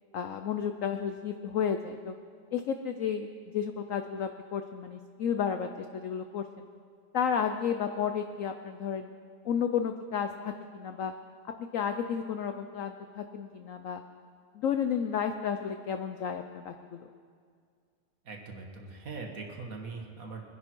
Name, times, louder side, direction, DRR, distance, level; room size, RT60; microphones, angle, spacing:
voice 1, 0.1-2.1 2.5-3.3 3.5-6.7 7.1-9.1 9.4-11.1 11.6-14.0 14.5-17.1, left 7 dB, 70° left, 7 dB, 0.8 m, -32 dB
voice 2, 18.3-20.4, right 4 dB, 50° right, 2 dB, 1.8 m, -41 dB
22.5 x 10.5 x 4.6 m, 2.1 s
omnidirectional pair, 2.0 m